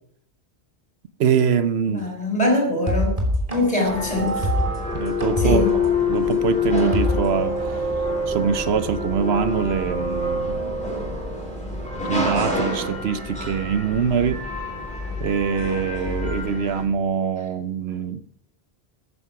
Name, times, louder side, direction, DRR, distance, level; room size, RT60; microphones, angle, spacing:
voice 1, 1.2-2.1 4.1-4.3 4.9-5.6 6.1-7.6 8.3-10.7 12.1-14.4 15.2-18.2, right 7 dB, 80° right, 1.0 m, -23 dB
voice 2, 1.9-3.1 3.5-4.5 5.4-5.7, left 2 dB, 35° left, 4.7 m, -23 dB
sound 1, 2.9-7.8, left 1 dB, 35° right, 3.4 m, -25 dB
sound 2, 3.8-16.8, left 3 dB, 5° left, 4.7 m, -26 dB
14.0 x 9.8 x 5.8 m
omnidirectional pair, 1.1 m